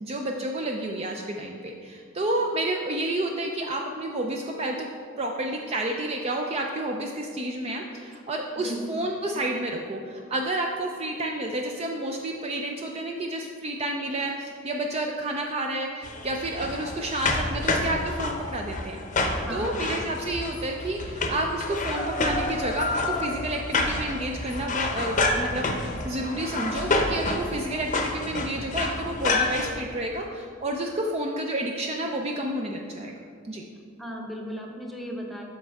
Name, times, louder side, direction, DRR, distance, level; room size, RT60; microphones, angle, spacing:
voice 1, 0.0-4.9 5.2-33.1 33.4-33.6, right 1 dB, 30° right, 2 dB, 0.4 m, -30 dB
voice 2, 8.6-8.9 19.4-20.0 34.0-35.4, equal, ahead, 0 dB, 0.8 m, -36 dB
sound 1, 16.0-29.7, left 2 dB, 35° left, 0.7 m, -28 dB
12.5 x 4.3 x 3.5 m, 2.3 s
head